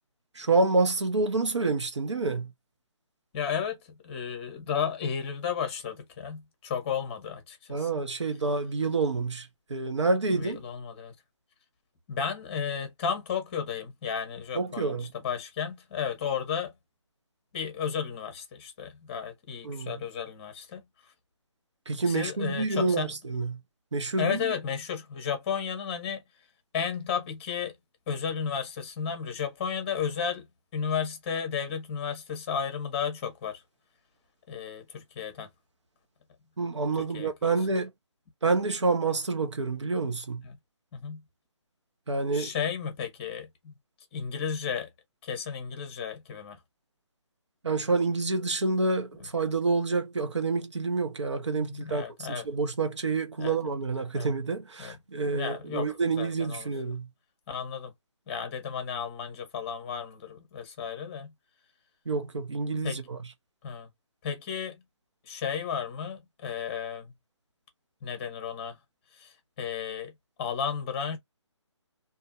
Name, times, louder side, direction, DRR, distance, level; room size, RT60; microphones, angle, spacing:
voice 1, 0.3-2.5 7.7-10.6 14.5-15.1 19.6-20.0 21.9-23.6 23.9-24.5 36.6-37.9 38.4-40.4 42.1-42.5 47.6-57.1 62.1-63.2, right 3 dB, 70° right, 0.9 m, -28 dB
voice 2, 3.3-7.9 10.3-11.1 12.1-15.0 15.2-16.7 17.5-20.8 22.1-23.1 24.2-26.2 26.7-27.7 28.1-30.5 30.7-33.6 34.5-35.5 37.1-37.5 40.4-40.6 40.9-41.2 42.3-43.7 44.1-44.9 45.2-46.6 51.6-52.4 53.4-53.6 54.1-54.3 54.8-55.0 55.3-55.9 56.2-56.7 57.5-57.9 58.3-61.3 62.8-63.0 63.6-63.9 64.2-64.8 65.3-67.1 68.0-68.8 69.2-70.1 70.4-71.2, left 7 dB, 20° left, 1.0 m, -33 dB
2.6 x 2.6 x 2.5 m
figure-of-eight pair, 145°, 16 cm